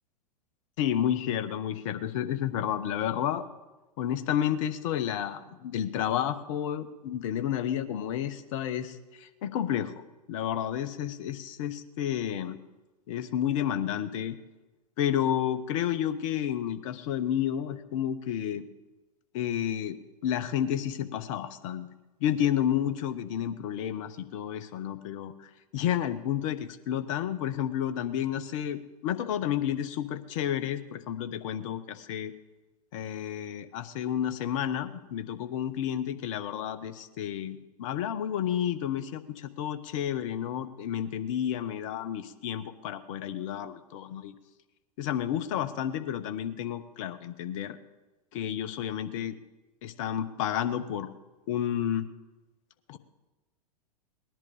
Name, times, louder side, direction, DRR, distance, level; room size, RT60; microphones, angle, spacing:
voice 1, 0.8-3.4 4.0-9.9 10.3-12.6 13.1-14.4 15.0-18.6 19.3-20.0 20.2-21.9 22.2-32.3 32.9-44.3 45.0-47.8 48.3-49.4 49.8-51.1 51.5-52.1 52.9-53.0, left 10 dB, 50° left, 11 dB, 1.1 m, -31 dB
19.0 x 11.0 x 5.0 m, 1.1 s
figure-of-eight pair, 95°, 21 cm